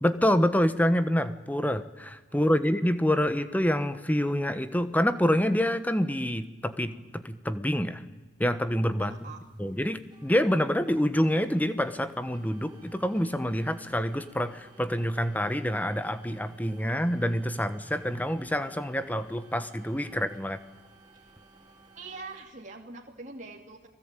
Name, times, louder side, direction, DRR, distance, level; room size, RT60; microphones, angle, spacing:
voice 1, 0.0-8.0 8.4-9.1 9.6-20.6, equal, 10° left, 12 dB, 1.2 m, -27 dB
sound 1, 9.0-22.4, right 2 dB, 20° right, 6.1 m, -56 dB
voice 2, 9.0-9.5 21.9-23.9, right 3 dB, 40° right, 0 dB, 2.5 m, -44 dB
30.0 x 20.0 x 9.1 m, 1.2 s
head